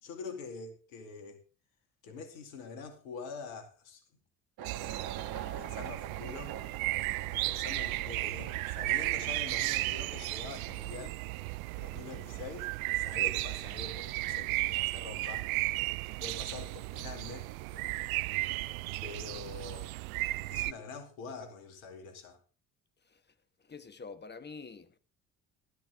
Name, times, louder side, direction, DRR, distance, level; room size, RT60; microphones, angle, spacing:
voice 1, 0.0-1.4 2.0-4.0 5.5-6.6 7.0-11.2 11.8-15.5 16.0-17.5 19.0-19.9 20.5-22.4, left 4 dB, 75° left, 2.5 m, -45 dB
sound 1, 4.6-11.9, right 9 dB, 55° right, 1.6 m, -45 dB
sound 2, 4.6-20.7, right 20 dB, 75° right, 0.5 m, -34 dB
voice 2, 23.7-25.0, left 4 dB, 25° left, 1.4 m, -46 dB
12.5 x 12.5 x 3.5 m
figure-of-eight pair, 55°, 42 cm